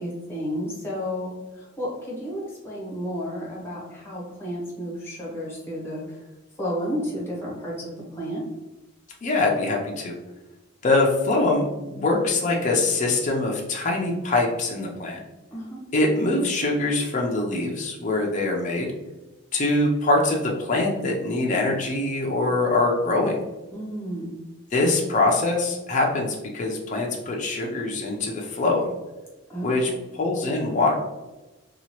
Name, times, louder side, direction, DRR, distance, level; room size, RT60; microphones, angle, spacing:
voice 1, 0.0-6.3 6.6-8.5 15.5-15.8 23.7-24.3 29.5-30.0, equal, 10° left, -5 dB, 0.8 m, -32 dB
voice 2, 9.2-10.1 10.8-15.2 15.9-18.9 19.5-23.4 24.7-28.9 29.6-30.9, left 2 dB, 35° left, -1 dB, 0.4 m, -23 dB
2.8 x 2.3 x 2.9 m, 1.1 s
head